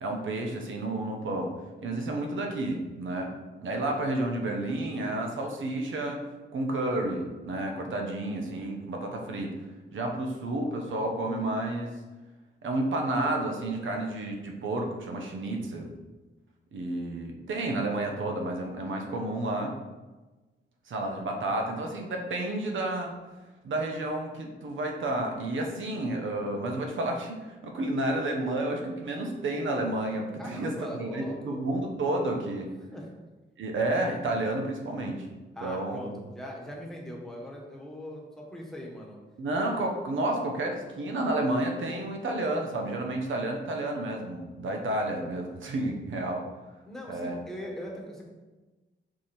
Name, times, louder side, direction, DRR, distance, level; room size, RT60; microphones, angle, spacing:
voice 1, 0.0-1.5 1.8-3.3 3.6-6.2 6.5-9.5 9.9-11.9 12.6-15.9 16.7-19.7 20.9-23.1 23.6-32.7 33.6-35.3 35.6-36.2 39.4-46.4 47.1-47.4, right 2 dB, 80° right, 2 dB, 1.1 m, -31 dB
voice 2, 30.4-31.6 32.9-33.1 35.5-39.2 46.9-48.3, left 1 dB, ahead, -2 dB, 1.5 m, -41 dB
5.7 x 4.9 x 4.4 m, 1.2 s
cardioid pair, 105°, 20 cm